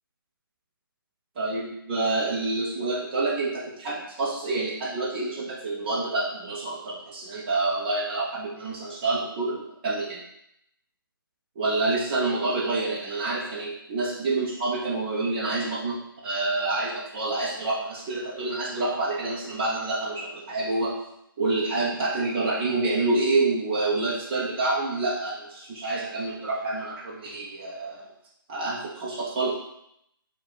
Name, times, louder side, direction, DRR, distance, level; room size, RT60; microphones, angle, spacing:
voice 1, 1.4-10.2 11.6-21.0 21.4-28.1 28.5-29.6, right 2 dB, 25° right, -6 dB, 0.5 m, -27 dB
4.7 x 2.2 x 3.8 m, 0.78 s
hypercardioid pair, 160°, 12 cm